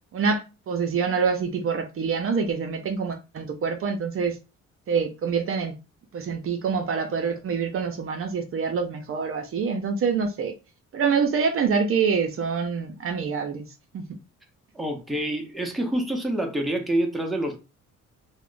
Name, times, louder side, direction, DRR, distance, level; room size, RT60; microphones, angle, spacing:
voice 1, 0.1-4.4 4.9-5.7 6.1-10.5 10.9-13.6 13.9-14.0, right 5 dB, 45° right, 0.5 m, -26 dB
voice 2, 14.7-17.6, right 1 dB, ahead, 0.6 m, -27 dB
2.3 x 2.1 x 3.6 m
cardioid pair, 90°, 30 cm